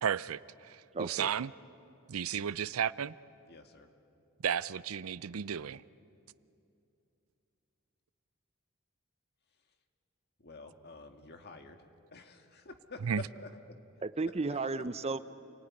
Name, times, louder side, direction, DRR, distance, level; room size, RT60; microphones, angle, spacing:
voice 1, 0.0-1.5 2.1-3.1 4.4-5.8 13.0-13.2, right 8 dB, 85° right, 0.5 m, -33 dB
voice 2, 0.9-1.3 14.0-15.2, right 3 dB, 30° right, 0.6 m, -34 dB
voice 3, 3.5-3.9 10.4-11.8 12.1-13.0 14.5-14.6, left 3 dB, 50° left, 1.9 m, -51 dB
29.0 x 19.0 x 9.8 m
head